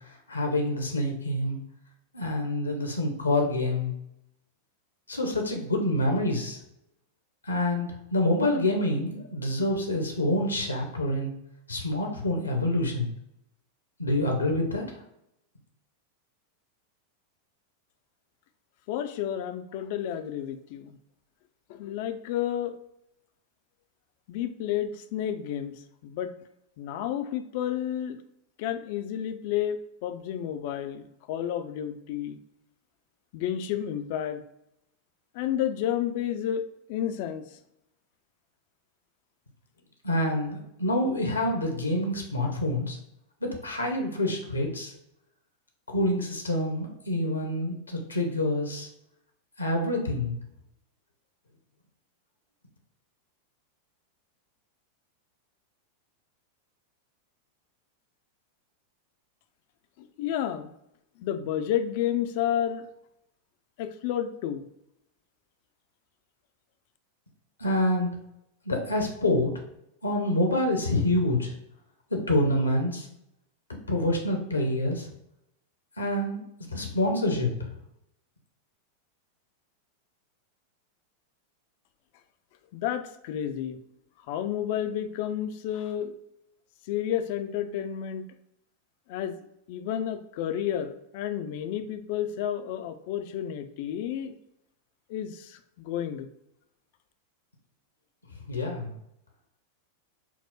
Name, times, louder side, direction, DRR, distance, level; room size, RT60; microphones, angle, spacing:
voice 1, 0.3-1.6 2.1-3.9 5.1-6.6 7.4-11.3 11.7-13.1 14.0-14.8 40.0-43.0 43.4-44.9 45.9-48.9 49.6-50.3 67.6-68.1 68.7-69.5 70.0-71.5 72.1-73.1 73.9-75.1 76.0-77.7 98.5-98.9, left 1 dB, 80° left, 2 dB, 0.8 m, -27 dB
voice 2, 18.9-21.0 21.7-22.7 24.3-26.3 26.8-28.2 28.6-32.4 33.3-34.4 35.3-37.4 60.0-60.7 61.2-62.9 63.8-64.6 82.7-83.8 84.3-86.1 86.9-88.2 89.1-89.4 89.7-94.4 95.1-96.3, left 10 dB, 50° left, 9 dB, 0.4 m, -31 dB
4.6 x 2.0 x 3.8 m, 0.81 s
figure-of-eight pair, 90°, 0 cm